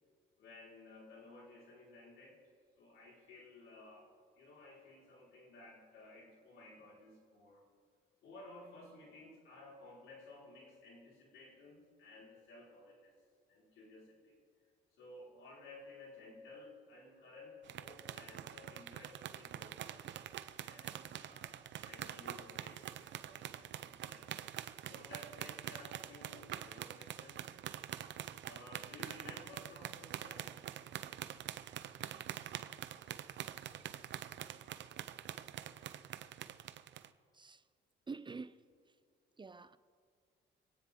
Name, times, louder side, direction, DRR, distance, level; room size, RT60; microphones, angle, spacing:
voice 1, 0.4-2.4 2.7-7.6 8.2-13.1 13.5-14.4 14.9-20.1 20.6-24.3 24.9-27.6 28.4-30.6, left 2 dB, 80° left, 4.9 m, -56 dB
sound 1, 17.7-37.1, right 11 dB, 70° right, 0.7 m, -46 dB
voice 2, 38.1-38.6 39.4-39.8, right 4 dB, 25° right, 0.5 m, -46 dB
27.5 x 9.5 x 3.8 m
cardioid pair, 90°, 20 cm